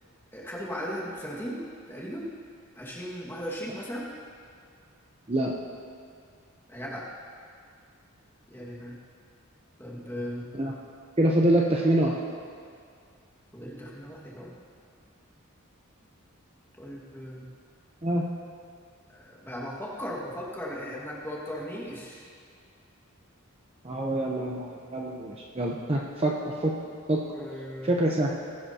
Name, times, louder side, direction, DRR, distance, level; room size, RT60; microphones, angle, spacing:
voice 1, 0.3-2.3 2.8-4.1 6.7-7.1 8.5-9.0 9.8-10.5 13.5-14.6 16.8-17.5 19.1-22.2 27.3-27.9, equal, 10° left, -5 dB, 1.9 m, -37 dB
voice 2, 11.2-12.2 18.0-18.3 23.8-26.7 27.1-27.2 27.8-28.3, right 1 dB, 25° right, -2 dB, 0.8 m, -25 dB
19.0 x 10.5 x 2.9 m, 2.2 s
head